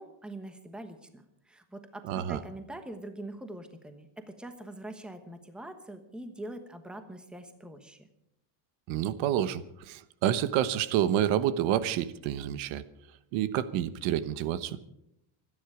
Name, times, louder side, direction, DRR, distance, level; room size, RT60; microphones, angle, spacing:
voice 1, 0.0-8.1, right 1 dB, ahead, 8 dB, 1.1 m, -44 dB
voice 2, 2.1-2.4 8.9-12.8 13.3-14.8, right 11 dB, 75° right, 14 dB, 1.2 m, -28 dB
25.5 x 10.5 x 5.0 m, 0.82 s
cardioid pair, 175°, 48 cm